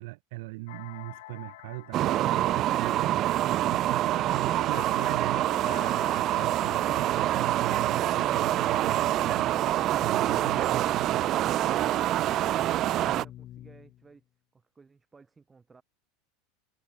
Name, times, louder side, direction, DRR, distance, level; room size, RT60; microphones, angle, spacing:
voice 1, 0.0-11.3, right 23 dB, 55° right, 5.0 m, -40 dB
sound 1, 0.7-7.3, left 18 dB, 65° left, 2.8 m, -47 dB
sound 2, 1.9-13.2, right 13 dB, 30° right, 0.5 m, -26 dB
Keyboard (musical), 5.5-14.2, left 13 dB, 25° left, 1.1 m, -49 dB
voice 2, 12.1-14.2 14.5-15.8, right 4 dB, 10° right, 3.3 m, -57 dB
supercardioid pair, 180°, 0 cm